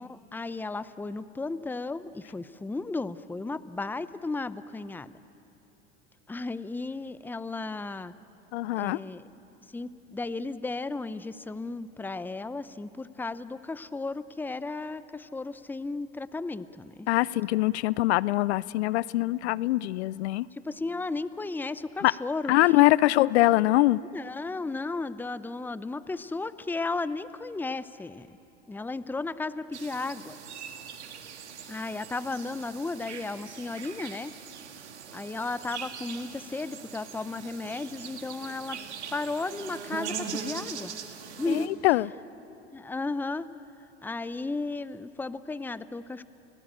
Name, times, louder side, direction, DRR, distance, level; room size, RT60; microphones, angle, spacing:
voice 1, 0.0-5.1 6.3-8.1 8.8-9.2 9.7-17.1 20.5-23.0 24.1-28.4 28.7-30.4 31.7-34.3 35.1-38.8 39.1-40.9 41.4-41.7 42.7-43.5 44.0-46.2, left 3 dB, 5° left, 15 dB, 0.6 m, -34 dB
voice 2, 8.5-9.0 17.1-20.5 22.0-22.1 22.5-24.0 41.5-42.1, left 17 dB, 70° left, 21 dB, 0.5 m, -23 dB
sound 1, 29.7-41.7, right 7 dB, 85° right, 1.9 m, -41 dB
30.0 x 18.0 x 8.9 m, 3.0 s
hypercardioid pair, 85°, 34 cm